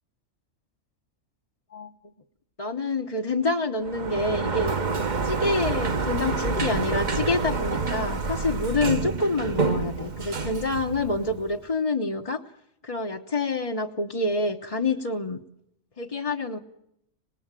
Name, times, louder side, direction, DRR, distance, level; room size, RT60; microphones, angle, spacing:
voice 1, 2.6-12.4 12.8-15.4 16.0-16.6, left 3 dB, 30° left, 1 dB, 1.0 m, -27 dB
Sliding door, 3.8-11.6, right 4 dB, 35° right, 1.1 m, -28 dB
26.5 x 19.5 x 9.0 m, 0.80 s
omnidirectional pair, 1.4 m